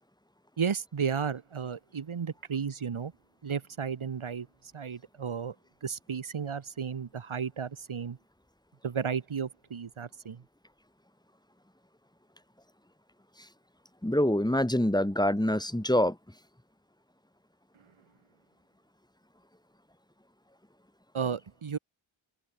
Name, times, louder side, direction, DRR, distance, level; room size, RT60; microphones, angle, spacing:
voice 1, 0.6-3.1 3.4-5.6 5.8-8.2 8.8-10.4 21.1-21.8, right 6 dB, 80° right, 2.3 m, -33 dB
voice 2, 14.0-16.2, left 1 dB, 10° left, 5.3 m, -25 dB
open air
wide cardioid pair, 90°, 48 cm